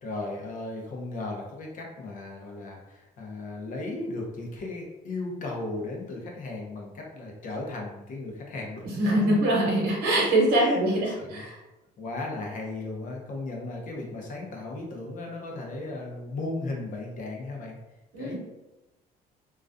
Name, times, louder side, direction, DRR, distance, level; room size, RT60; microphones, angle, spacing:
voice 1, 0.0-8.8 10.5-10.8 11.2-11.4 12.0-17.8 18.2-18.4, left 2 dB, 50° left, 0 dB, 0.7 m, -36 dB
voice 2, 9.0-11.6 18.1-18.4, right 1 dB, 75° right, -3 dB, 0.8 m, -23 dB
2.3 x 2.2 x 2.5 m, 1.0 s
cardioid pair, 110°, 17 cm